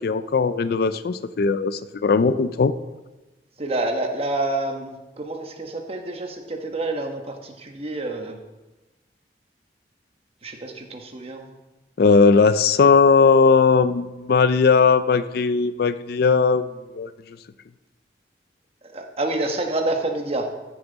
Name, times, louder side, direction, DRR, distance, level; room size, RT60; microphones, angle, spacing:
voice 1, 0.0-2.7 12.0-16.7 16.9-17.1, left 5 dB, 60° left, 13 dB, 0.4 m, -18 dB
voice 2, 3.6-8.4 10.4-11.5 18.8-20.5, right 2 dB, 35° right, 4 dB, 1.2 m, -28 dB
14.0 x 7.1 x 4.0 m, 1.1 s
head